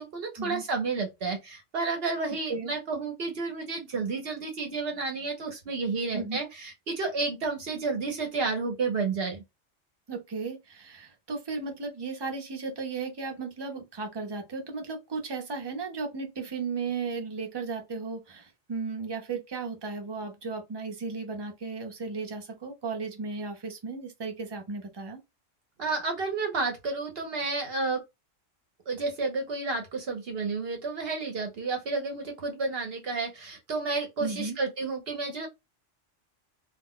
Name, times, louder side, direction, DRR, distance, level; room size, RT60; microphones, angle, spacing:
voice 1, 0.0-9.4 25.8-28.0 28.9-35.5, right 3 dB, 60° right, 0.8 m, -31 dB
voice 2, 10.1-25.2 34.2-34.6, right 4 dB, 30° right, 0.5 m, -35 dB
2.4 x 2.0 x 3.6 m
omnidirectional pair, 1.3 m